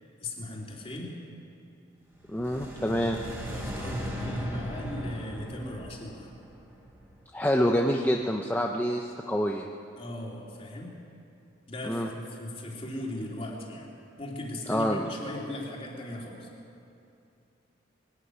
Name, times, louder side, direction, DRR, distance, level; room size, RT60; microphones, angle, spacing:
voice 1, 0.2-1.1 3.4-6.3 10.0-10.9 11.7-13.9 14.2-16.5, left 1 dB, 30° left, -2 dB, 3.2 m, -38 dB
sound 1, 2.2-7.4, equal, 15° right, 3.4 m, -37 dB
voice 2, 2.3-3.2 7.3-9.7 11.8-12.1 14.7-15.1, equal, 10° left, 1 dB, 0.8 m, -27 dB
21.0 x 12.5 x 9.8 m, 2.7 s
head